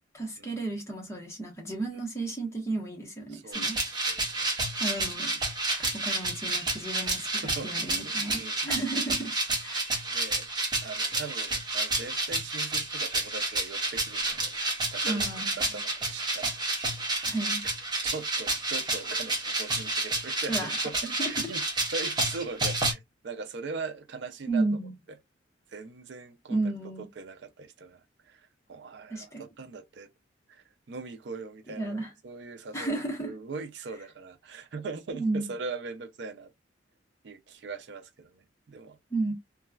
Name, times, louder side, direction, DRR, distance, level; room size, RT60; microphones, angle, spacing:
voice 1, 0.1-3.8 4.8-5.3 5.9-9.3 9.6-9.9 15.0-15.7 17.3-17.6 20.5-20.7 21.2-21.5 24.5-24.9 26.5-27.0 29.1-29.4 31.8-32.1 32.7-33.3 35.1-35.5 39.1-39.3, right 2 dB, 15° left, 1.0 m, -33 dB
voice 2, 3.3-4.5 7.4-7.9 8.3-8.6 10.1-10.5 10.8-14.5 14.9-15.2 15.6-16.8 18.0-20.9 21.2-21.6 21.9-24.7 25.7-26.6 27.0-30.1 30.5-36.5 37.2-39.0, right 4 dB, 65° right, 0.4 m, -41 dB
sound 1, 3.5-22.9, right 2 dB, 25° right, 0.9 m, -30 dB
3.0 x 2.3 x 2.3 m
head